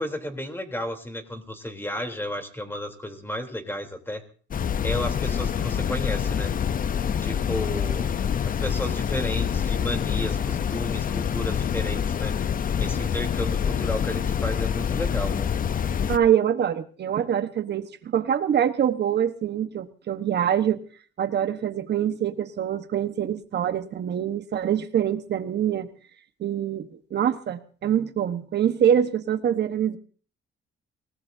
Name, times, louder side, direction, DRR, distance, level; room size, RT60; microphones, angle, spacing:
voice 1, 0.0-4.2 4.8-6.5 7.2-12.3 12.8-15.5, left 1 dB, 10° left, 4 dB, 3.4 m, -33 dB
sound 1, 4.5-16.2, left 8 dB, 45° left, 0.7 m, -26 dB
voice 2, 16.1-20.8 21.2-25.9 26.4-30.0, right 9 dB, 60° right, 9 dB, 1.3 m, -24 dB
25.5 x 18.5 x 2.8 m, 0.42 s
cardioid pair, 90°, 20 cm